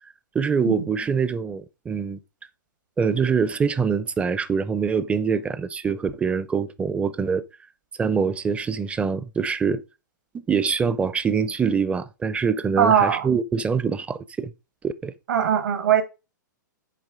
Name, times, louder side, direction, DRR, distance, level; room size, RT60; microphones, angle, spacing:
voice 1, 0.3-2.2 3.0-7.4 8.0-9.8 10.3-14.5 14.8-15.1, right 6 dB, 10° right, 0.4 m, -24 dB
voice 2, 12.8-13.3 15.3-16.0, right 8 dB, 65° right, 1.3 m, -20 dB
7.4 x 4.5 x 3.6 m
figure-of-eight pair, 110°, 11 cm